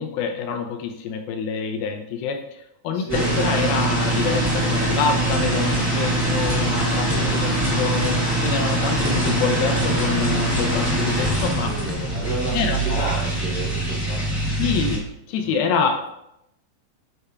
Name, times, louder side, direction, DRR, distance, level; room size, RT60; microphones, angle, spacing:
voice 1, 0.0-11.7 12.5-13.1 14.6-16.1, left 6 dB, 80° left, 5 dB, 2.4 m, -26 dB
voice 2, 2.9-3.3 6.9-7.4 11.4-14.2 15.4-15.6, right 1 dB, 40° left, -7 dB, 3.5 m, -32 dB
sound 1, 3.1-15.0, right 1 dB, 5° right, 1.2 m, -23 dB
9.8 x 5.8 x 2.4 m, 0.82 s
omnidirectional pair, 4.5 m